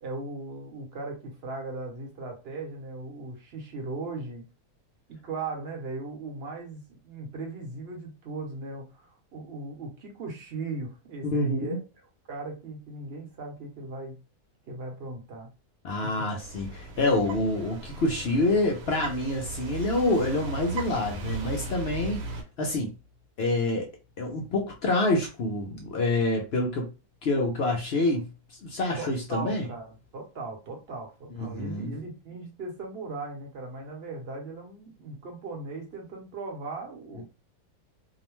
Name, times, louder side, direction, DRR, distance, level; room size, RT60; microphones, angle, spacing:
voice 1, 0.0-4.4 5.1-11.8 12.3-14.2 14.7-15.5 16.0-16.3 29.0-37.2, right 3 dB, 50° right, 2 dB, 0.9 m, -38 dB
voice 2, 11.3-11.7 15.8-22.2 22.6-22.9 23.4-23.9 24.2-26.9 27.2-28.3 28.6-29.7 31.4-31.9, left 2 dB, 65° left, 1 dB, 0.6 m, -27 dB
sound 1, 16.4-22.4, right 3 dB, 70° right, 1.1 m, -37 dB
2.7 x 2.1 x 3.0 m, 0.30 s
omnidirectional pair, 1.6 m